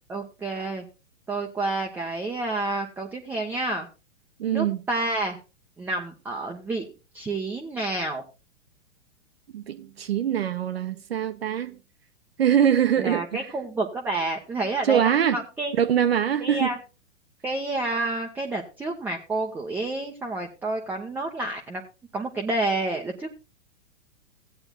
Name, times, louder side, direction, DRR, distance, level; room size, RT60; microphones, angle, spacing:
voice 1, 0.1-0.8 1.3-3.9 4.5-5.4 5.8-6.9 7.1-8.2 13.0-15.7 16.4-16.8 17.4-21.8 22.1-23.3, right 2 dB, 5° right, 0.6 m, -29 dB
voice 2, 4.4-4.8 9.5-11.8 12.4-13.5 14.8-15.4 15.7-16.7, right 9 dB, 55° right, 0.8 m, -23 dB
16.5 x 8.7 x 2.2 m
figure-of-eight pair, 110°, 35 cm